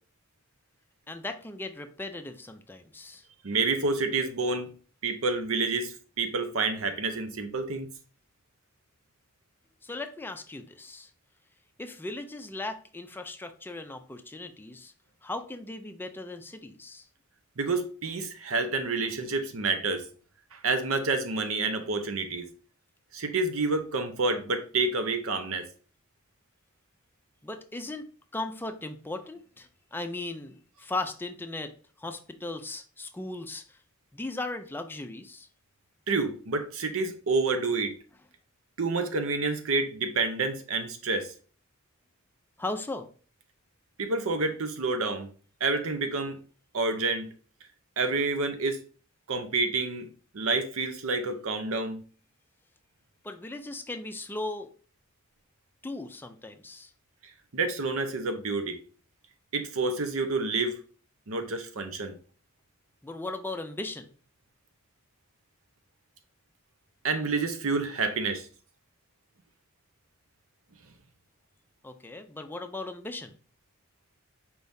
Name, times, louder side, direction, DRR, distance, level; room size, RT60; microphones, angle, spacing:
voice 1, 1.1-3.2 9.8-11.1 11.8-14.9 15.2-17.1 27.4-28.0 28.3-31.7 32.0-33.8 34.1-35.5 42.6-43.1 53.2-54.7 55.8-56.9 63.0-64.1 71.8-73.4, left 2 dB, 10° left, 0.4 m, -37 dB
voice 2, 3.4-4.7 5.0-7.9 17.6-20.0 20.5-22.5 23.1-25.7 36.1-37.9 38.8-41.3 44.0-45.3 45.6-46.4 46.7-47.3 48.0-48.8 49.3-50.1 50.3-52.0 57.5-58.8 59.5-60.8 61.3-62.1 67.0-68.5, right 3 dB, 75° right, 0.7 m, -28 dB
4.6 x 3.6 x 2.7 m
head